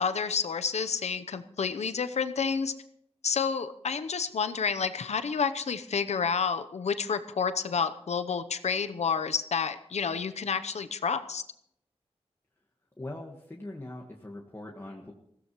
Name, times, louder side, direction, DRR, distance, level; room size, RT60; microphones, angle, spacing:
voice 1, 0.0-2.7 3.2-11.4, left 6 dB, 85° left, 11 dB, 0.8 m, -29 dB
voice 2, 13.0-15.1, left 1 dB, 20° left, -1 dB, 1.5 m, -41 dB
20.0 x 15.5 x 3.1 m, 0.73 s
wide cardioid pair, 80°, 11 cm